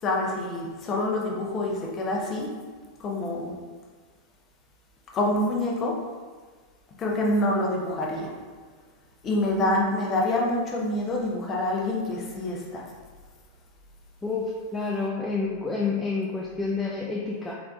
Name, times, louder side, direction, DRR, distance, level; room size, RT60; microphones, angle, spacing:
voice 1, 0.0-2.5 3.0-3.6 5.1-5.9 7.0-8.3 9.2-12.8, left 1 dB, 30° left, -2 dB, 0.7 m, -26 dB
voice 2, 9.5-10.2 14.2-17.5, left 4 dB, 15° left, -3 dB, 0.3 m, -29 dB
3.8 x 3.4 x 2.3 m, 1.5 s
figure-of-eight pair, 90°, 0 cm